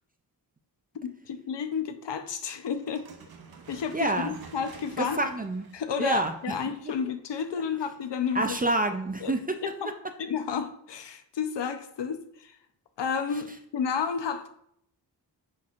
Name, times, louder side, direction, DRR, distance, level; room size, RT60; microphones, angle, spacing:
voice 1, 1.0-3.1 3.7-5.2 5.7-8.4 9.2-9.3 9.6-9.9 10.2-12.5 13.0-14.5, left 6 dB, 80° left, 0.7 m, -31 dB
sound 1, 2.8-7.0, right 5 dB, 60° right, 0.8 m, -50 dB
voice 2, 3.9-4.4 5.0-5.7 6.0-6.7 8.3-9.6 13.3-13.4, right 2 dB, 25° right, 0.3 m, -28 dB
10.0 x 4.3 x 2.4 m
wide cardioid pair, 170°, 42 cm